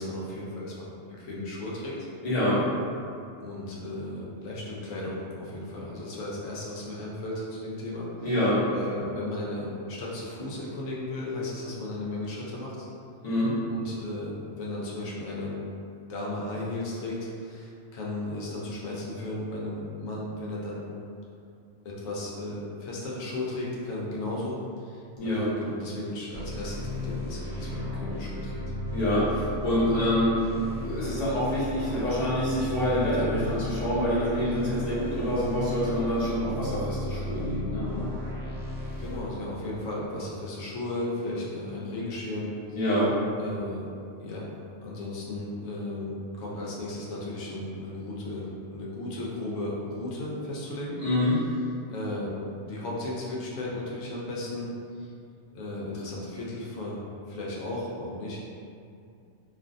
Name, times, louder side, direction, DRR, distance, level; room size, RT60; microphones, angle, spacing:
voice 1, 0.0-1.9 3.4-8.4 8.7-12.9 13.6-15.6 16.1-20.8 21.8-28.6 39.0-42.5 43.4-43.9 44.2-44.5 44.8-51.0 51.9-52.3 52.6-54.7 55.5-58.4, left 1 dB, 85° left, -5 dB, 1.0 m, -35 dB
voice 2, 2.2-2.6 8.2-8.6 13.2-13.5 25.2-25.4 28.9-30.4 30.8-38.1 42.7-43.1 51.0-51.3, equal, 35° left, -10 dB, 0.8 m, -26 dB
sound 1, 26.3-39.2, left 2 dB, 65° right, 0.8 m, -34 dB
2.5 x 2.4 x 2.4 m, 2.5 s
omnidirectional pair, 1.3 m